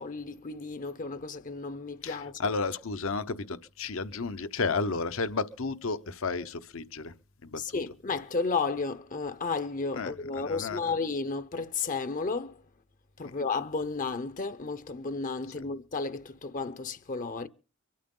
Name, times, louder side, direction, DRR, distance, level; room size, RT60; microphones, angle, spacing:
voice 1, 0.0-2.4 7.6-12.6 13.2-17.5, left 4 dB, 40° left, 0.8 m, -33 dB
voice 2, 2.0-7.1 7.4-7.6 10.0-10.8, left 4 dB, 65° left, 0.9 m, -32 dB
24.0 x 13.0 x 3.8 m
head